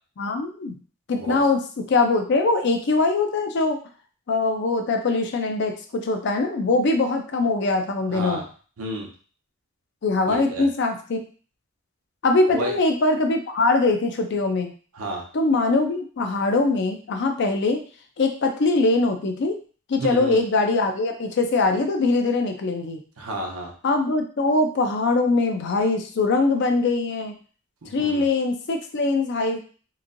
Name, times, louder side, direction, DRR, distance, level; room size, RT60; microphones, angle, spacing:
voice 1, 0.2-0.8 1.1-3.8 4.3-8.4 10.0-11.2 12.2-14.7 15.3-17.8 18.2-19.6 19.9-23.0 23.8-27.4 27.9-29.6, left 3 dB, 55° left, 5 dB, 0.5 m, -22 dB
voice 2, 8.1-8.5 8.8-9.1 10.3-10.7 12.5-12.7 14.9-15.2 20.0-20.4 23.2-23.7 27.8-28.3, right 1 dB, 85° right, -1 dB, 0.7 m, -31 dB
3.0 x 2.6 x 2.5 m, 0.40 s
head